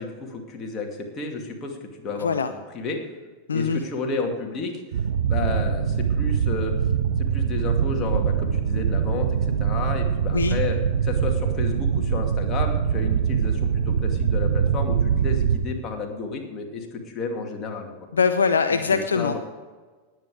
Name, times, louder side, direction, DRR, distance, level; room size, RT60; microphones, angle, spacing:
voice 1, 0.0-3.0 3.5-4.8 5.3-6.7 7.2-10.8 11.0-17.9 18.7-19.4, left 4 dB, 25° left, 2 dB, 2.5 m, -32 dB
voice 2, 2.1-2.5 3.5-3.8 10.3-10.6 18.1-19.4, left 5 dB, 70° left, 9 dB, 0.6 m, -22 dB
sound 1, 4.9-15.6, right 7 dB, 60° right, 1.4 m, -23 dB
19.5 x 8.2 x 5.0 m, 1.3 s
figure-of-eight pair, 90°, 0 cm